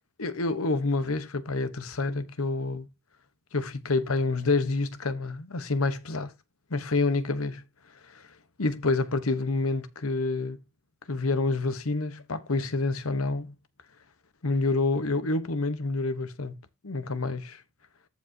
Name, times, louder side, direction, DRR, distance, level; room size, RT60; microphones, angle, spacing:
voice 1, 0.2-2.9 3.5-6.3 6.7-7.6 8.1-8.3 8.6-10.6 11.1-13.5 14.4-16.6 16.8-17.6, left 3 dB, 90° left, 1.2 m, -28 dB
14.5 x 4.9 x 2.9 m
head